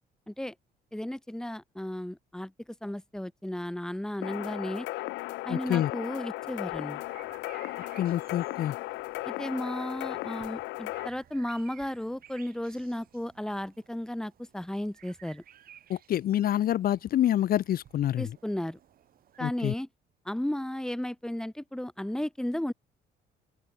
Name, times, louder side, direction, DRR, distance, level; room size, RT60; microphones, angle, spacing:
voice 1, 0.9-2.5 2.8-4.9 5.4-7.0 9.2-15.4 18.2-18.8 19.4-19.9 20.2-22.7, left 1 dB, 5° left, 3.2 m, -34 dB
sound 1, 4.2-11.1, left 21 dB, 90° left, 0.7 m, -36 dB
voice 2, 5.5-5.9 8.0-8.7 15.9-18.3 19.4-19.7, left 11 dB, 55° left, 1.5 m, -27 dB
sound 2, 6.4-19.4, right 10 dB, 55° right, 6.8 m, -57 dB
open air
cardioid pair, 130°, 18 cm